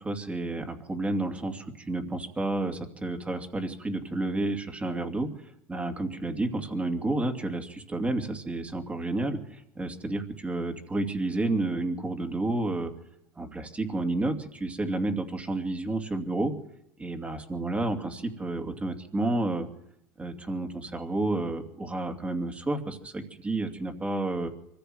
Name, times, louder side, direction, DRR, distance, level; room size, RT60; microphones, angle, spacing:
voice 1, 0.0-5.3 5.7-12.9 13.4-16.5 17.0-19.7 20.2-24.5, right 2 dB, 15° right, 6 dB, 2.7 m, -30 dB
24.0 x 15.5 x 7.9 m, 0.77 s
supercardioid pair, 135°, 10 cm